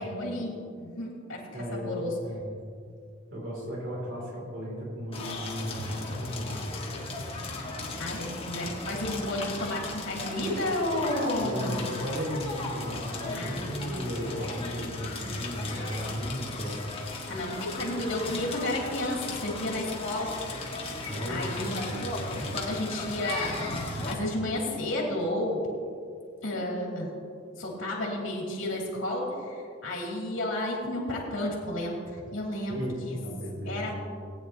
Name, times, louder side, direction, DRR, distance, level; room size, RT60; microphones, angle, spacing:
voice 1, 0.0-2.2 8.0-11.7 13.4-13.8 17.3-20.3 20.7-21.0 21.3-23.5 23.8-25.6 26.4-27.1 27.6-32.8 33.1-33.2 33.6-33.9, left 1 dB, 70° left, -3 dB, 2.5 m, -32 dB
voice 2, 1.5-2.6 3.3-7.0 11.3-16.8 17.2-17.3 21.0-21.7 32.7-33.9, equal, 65° right, -4 dB, 2.9 m, -35 dB
Crackle, 5.1-24.1, left 2 dB, 30° left, 1.5 m, -36 dB
19.0 x 9.2 x 2.9 m, 2.3 s
head